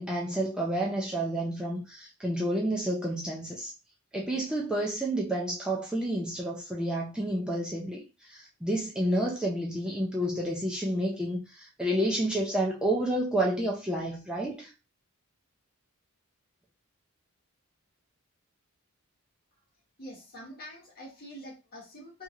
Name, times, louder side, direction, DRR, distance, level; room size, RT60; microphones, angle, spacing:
voice 1, 0.0-3.7 4.1-14.7, right 1 dB, 5° right, 0.4 m, -30 dB
voice 2, 20.0-22.2, equal, 45° left, 1.3 m, -45 dB
2.8 x 2.8 x 2.4 m
head